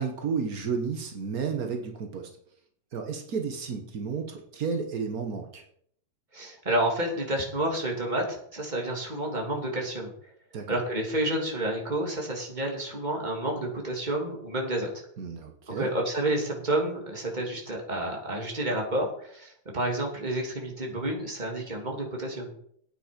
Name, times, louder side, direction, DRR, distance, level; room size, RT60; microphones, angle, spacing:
voice 1, 0.0-2.3 2.9-5.6 10.5-10.8 15.2-15.9, right 5 dB, 85° right, 4 dB, 0.8 m, -32 dB
voice 2, 6.3-10.1 10.7-14.9 15.7-22.5, right 1 dB, 15° right, 0 dB, 2.3 m, -30 dB
11.0 x 9.0 x 5.2 m, 0.65 s
omnidirectional pair, 3.6 m